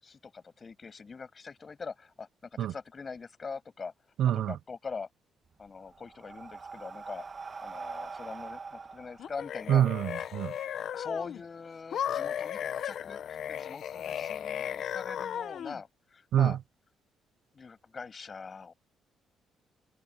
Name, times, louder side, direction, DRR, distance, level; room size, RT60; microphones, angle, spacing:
voice 1, 0.0-3.9 4.3-5.1 5.6-7.3 7.6-9.9 10.9-16.6 17.5-18.7, left 5 dB, 35° left, 6.6 m, -43 dB
voice 2, 4.2-4.6 9.7-10.5 16.3-16.6, right 10 dB, 75° right, 0.5 m, -26 dB
Breathing, 5.5-10.2, right 4 dB, 35° right, 1.8 m, -43 dB
sound 1, 9.2-11.4 11.9-15.8, left 9 dB, 70° left, 1.1 m, -35 dB
cardioid pair, 90°, 0 cm